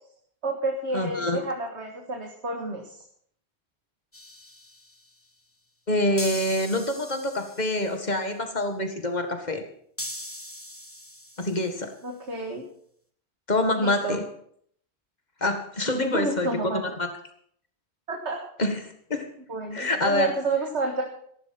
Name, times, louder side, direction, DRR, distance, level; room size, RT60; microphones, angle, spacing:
voice 1, 0.4-3.0 12.0-12.6 13.8-14.2 15.9-16.8 18.1-18.4 19.5-21.0, right 2 dB, 85° right, 2 dB, 2.1 m, -29 dB
voice 2, 0.9-1.4 5.9-9.6 11.4-11.9 13.5-14.2 15.4-16.5 16.7-17.1 18.6-19.3 19.7-20.3, left 1 dB, 40° left, 6 dB, 2.0 m, -26 dB
sound 1, 4.1-5.0 6.2-8.1 10.0-11.9, left 1 dB, 10° left, 1.3 m, -40 dB
14.5 x 11.5 x 5.9 m, 0.65 s
omnidirectional pair, 1.1 m